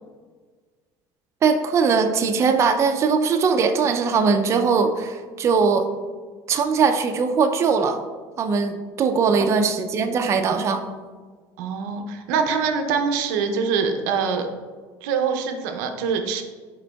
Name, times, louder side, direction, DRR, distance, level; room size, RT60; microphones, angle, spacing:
voice 1, 1.4-5.9 6.5-8.0 8.4-10.8, right 5 dB, 30° right, 6 dB, 0.3 m, -20 dB
voice 2, 11.6-14.5 15.0-16.4, right 5 dB, 85° right, 6 dB, 0.5 m, -24 dB
5.0 x 4.5 x 2.2 m, 1.5 s
supercardioid pair, 115°, 10 cm